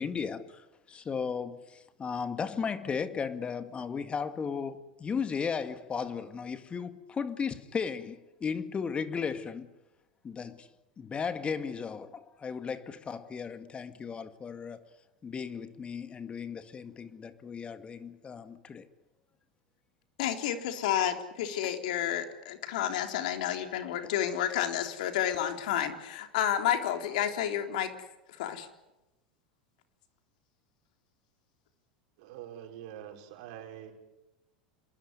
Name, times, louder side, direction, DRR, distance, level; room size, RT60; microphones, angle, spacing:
voice 1, 0.0-9.7 10.2-10.7 11.0-14.8 15.2-18.9, left 6 dB, 25° left, 2.0 m, -35 dB
voice 2, 20.2-27.9 28.3-28.7, left 10 dB, 65° left, 3.6 m, -30 dB
voice 3, 32.2-33.9, right 10 dB, 65° right, 5.2 m, -45 dB
27.5 x 20.5 x 9.8 m
hypercardioid pair, 90°, 4 cm